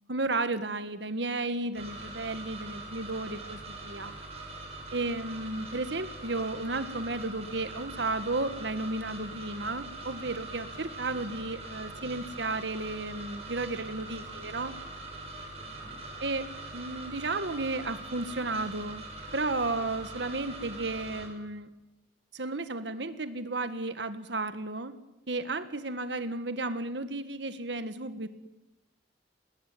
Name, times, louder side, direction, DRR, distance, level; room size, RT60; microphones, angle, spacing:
voice 1, 0.1-4.2 4.9-14.7 16.2-19.1 19.3-21.7 22.3-24.9 25.3-28.3, right 2 dB, 80° right, 11 dB, 1.7 m, -33 dB
sound 1, 1.7-21.3, right 2 dB, 35° right, 7.7 m, -42 dB
voice 2, 15.5-16.0, equal, ahead, 3 dB, 5.2 m, -56 dB
30.0 x 21.0 x 9.3 m, 0.97 s
head